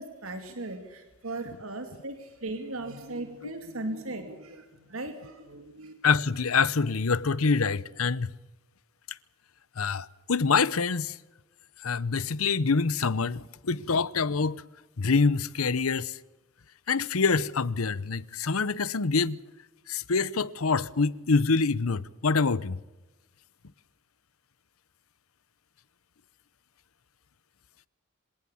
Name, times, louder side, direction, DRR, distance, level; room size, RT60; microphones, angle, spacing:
voice 1, 0.0-5.9, right 2 dB, 75° right, 2.6 m, -38 dB
voice 2, 6.0-8.3 9.8-11.2 11.8-14.6 15.0-16.2 16.9-19.4 19.9-22.8, left 4 dB, 85° left, 0.9 m, -26 dB
26.5 x 18.0 x 7.2 m
head